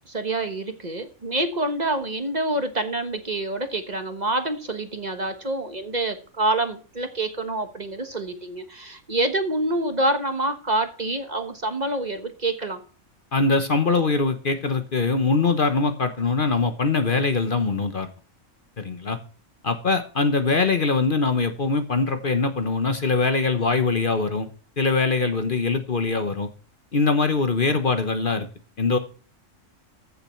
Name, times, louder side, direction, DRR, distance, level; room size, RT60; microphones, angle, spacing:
voice 1, 0.1-12.8, right 2 dB, 35° right, 8 dB, 1.3 m, -27 dB
voice 2, 13.3-18.1 18.8-19.2 19.6-24.5 24.8-26.5 26.9-28.5 28.8-29.0, left 4 dB, 45° left, 9 dB, 1.1 m, -22 dB
15.0 x 7.0 x 4.4 m, 0.40 s
omnidirectional pair, 1.3 m